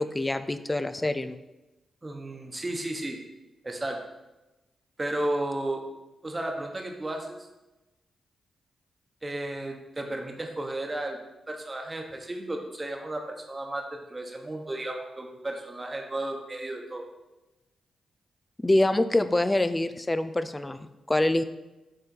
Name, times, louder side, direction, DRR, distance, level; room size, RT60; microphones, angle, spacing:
voice 1, 0.0-1.4 18.6-21.4, left 1 dB, 20° left, 11 dB, 0.4 m, -25 dB
voice 2, 2.0-3.2 3.6-4.0 5.0-5.8 6.2-7.4 9.2-17.1, right 1 dB, 30° right, 3 dB, 1.2 m, -33 dB
6.6 x 3.5 x 4.5 m, 1.0 s
supercardioid pair, 55°, 0 cm